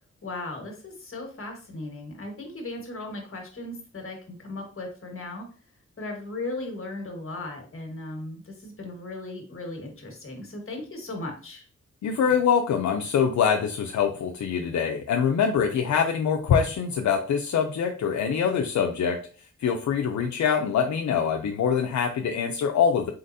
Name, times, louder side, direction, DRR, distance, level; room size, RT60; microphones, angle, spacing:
voice 1, 0.2-5.4 6.0-11.6, left 2 dB, 45° left, 2 dB, 1.4 m, -37 dB
voice 2, 12.0-19.3 19.6-23.1, left 7 dB, 75° left, 3 dB, 0.5 m, -24 dB
4.1 x 3.8 x 2.6 m, 0.41 s
wide cardioid pair, 85°, 29 cm